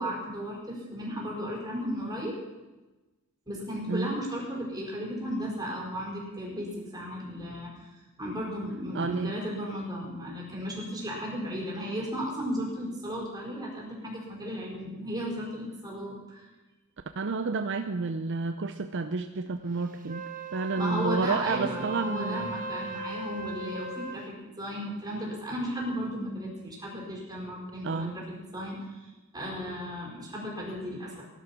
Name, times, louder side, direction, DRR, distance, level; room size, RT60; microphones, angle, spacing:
voice 1, 0.0-2.3 3.5-7.9 8.2-16.5 20.7-31.3, equal, 20° right, -3 dB, 5.0 m, -35 dB
voice 2, 8.9-9.4 17.2-20.2 20.5-22.5 27.8-28.1, right 4 dB, 55° right, 8 dB, 0.6 m, -30 dB
Wind instrument woodwind instrument, 20.0-24.3, right 3 dB, 40° right, 1.2 m, -38 dB
16.5 x 12.0 x 5.9 m, 1.1 s
head